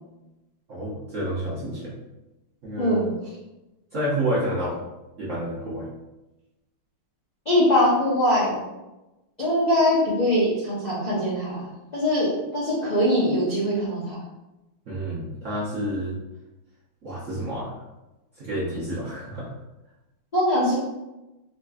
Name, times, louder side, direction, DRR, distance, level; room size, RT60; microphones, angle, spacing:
voice 1, 0.7-1.9 2.6-3.1 3.9-4.8 5.2-5.9 14.9-16.2 17.0-17.7 18.4-19.5, right 1 dB, 60° right, -9 dB, 0.8 m, -29 dB
voice 2, 7.4-8.5 9.4-14.1 20.3-20.7, left 1 dB, 85° left, -10 dB, 0.3 m, -22 dB
4.0 x 3.1 x 2.3 m, 1.0 s
omnidirectional pair, 2.4 m